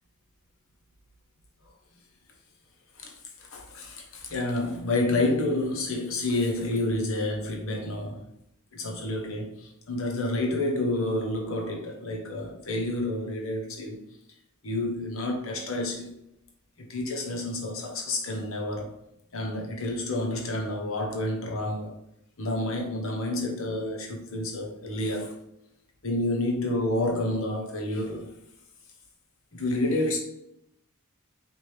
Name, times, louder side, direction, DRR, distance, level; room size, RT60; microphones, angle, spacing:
voice 1, 3.0-8.3 8.7-14.0 14.6-16.1 16.9-19.0 19.3-22.0 22.4-25.4 26.0-28.3 29.5-30.2, left 1 dB, 60° left, 1.1 m, -29 dB
5.0 x 2.6 x 3.2 m
head